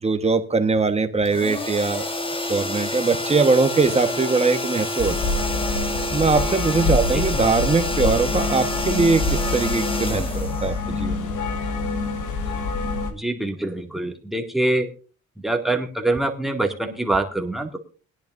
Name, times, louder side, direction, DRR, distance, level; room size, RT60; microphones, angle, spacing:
voice 1, 0.0-2.0 2.5-5.3 6.1-11.3, right 4 dB, 20° right, 7 dB, 1.2 m, -21 dB
sound 1, 1.3-11.2, left 1 dB, 15° left, 1.6 m, -28 dB
sound 2, 5.0-13.1, left 3 dB, 80° left, 2.0 m, -26 dB
voice 2, 13.1-14.9 15.4-17.8, right 2 dB, ahead, 2 dB, 2.1 m, -24 dB
21.5 x 10.5 x 2.6 m, 0.36 s
cardioid pair, 105°, 30 cm